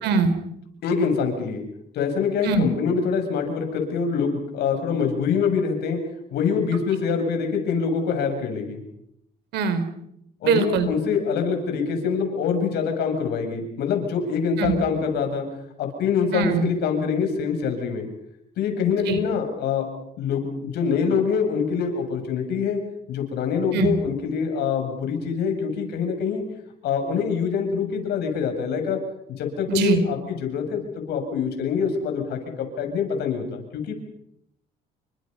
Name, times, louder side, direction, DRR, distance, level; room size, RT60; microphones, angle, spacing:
voice 1, 0.0-0.3 2.4-2.7 9.5-9.9 10.4-10.9 14.6-14.8 16.3-16.7 19.1-19.2 23.7-24.0 29.7-30.0, right 5 dB, 85° right, 11 dB, 4.1 m, -21 dB
voice 2, 0.8-1.6 1.9-6.0 6.3-8.8 10.4-15.5 15.8-18.1 18.6-19.9 20.2-22.8 23.1-26.4 26.8-29.0 29.4-33.9, left 6 dB, 75° left, 5 dB, 7.7 m, -25 dB
30.0 x 25.5 x 5.6 m, 0.74 s
cardioid pair, 110°, 17 cm